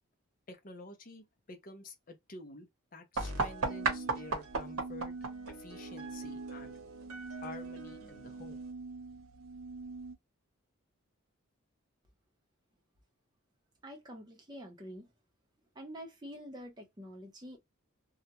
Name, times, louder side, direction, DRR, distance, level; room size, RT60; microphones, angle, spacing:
voice 1, 0.5-5.1 5.5-6.8 7.3-8.6, left 2 dB, 40° left, 0.5 m, -50 dB
sound 1, 3.1-8.7, right 4 dB, 90° right, 0.8 m, -38 dB
sound 2, 3.6-10.1, right 3 dB, 65° right, 0.4 m, -45 dB
voice 2, 13.8-15.1 15.8-17.6, equal, 20° right, 0.6 m, -47 dB
2.3 x 2.1 x 2.8 m
head